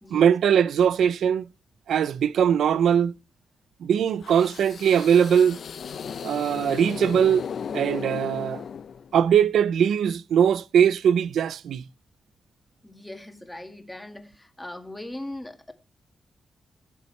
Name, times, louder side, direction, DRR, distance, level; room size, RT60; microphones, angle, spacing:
voice 1, 0.1-1.4 1.9-3.1 3.8-5.6 6.2-7.5 7.7-8.6 9.1-11.8, right 8 dB, 90° right, 0.4 m, -21 dB
sound 1, 4.2-9.3, left 7 dB, 60° left, 0.5 m, -36 dB
voice 2, 12.8-15.7, left 1 dB, 10° left, 1.8 m, -39 dB
16.0 x 6.9 x 3.2 m
cardioid pair, 115°, 0 cm